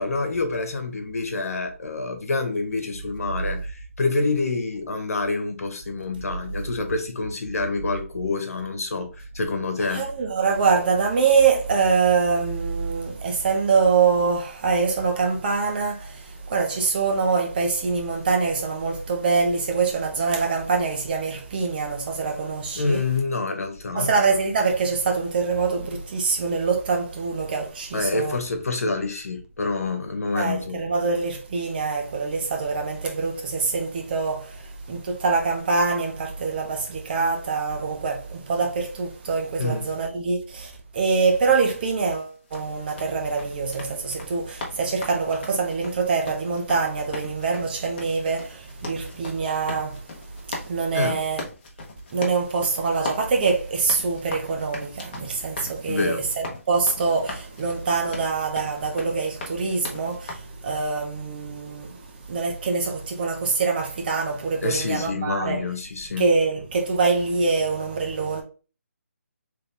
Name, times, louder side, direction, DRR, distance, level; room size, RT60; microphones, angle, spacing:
voice 1, 0.0-10.1 22.7-24.1 27.9-30.8 39.6-39.9 49.0-49.1 50.9-51.2 55.9-56.3 64.6-66.3, left 3 dB, 75° left, 1.2 m, -27 dB
voice 2, 9.9-23.0 23.9-28.4 30.3-34.6 34.9-50.0 50.5-51.4 52.1-65.6 66.2-68.4, right 4 dB, 40° right, 1.1 m, -24 dB
sound 1, 42.1-60.3, left 3 dB, 40° left, 1.1 m, -39 dB
3.9 x 3.3 x 3.3 m
hypercardioid pair, 160°, 8 cm